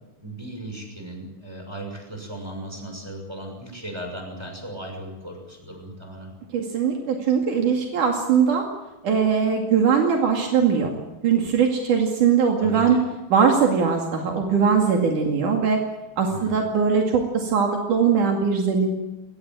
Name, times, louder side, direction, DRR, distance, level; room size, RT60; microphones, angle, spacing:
voice 1, 0.2-6.3 12.6-13.0 16.3-16.5, right 1 dB, 5° right, 3 dB, 6.5 m, -36 dB
voice 2, 6.5-8.7 9.0-13.0 13.3-15.8 16.2-18.9, right 6 dB, 75° right, 2 dB, 3.8 m, -21 dB
22.0 x 19.5 x 9.4 m, 1.0 s
omnidirectional pair, 3.6 m